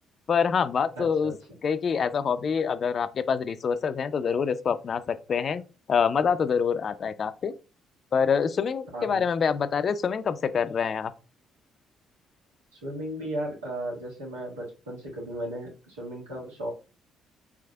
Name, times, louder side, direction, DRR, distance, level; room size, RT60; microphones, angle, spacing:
voice 1, 0.3-1.3 1.6-5.6 5.9-7.5 8.1-11.1, left 6 dB, 50° left, 0.4 m, -26 dB
voice 2, 1.0-1.3 8.9-9.2 12.7-16.7, right 1 dB, 85° right, 1.6 m, -35 dB
4.8 x 3.4 x 2.2 m
hypercardioid pair, 45°, 0 cm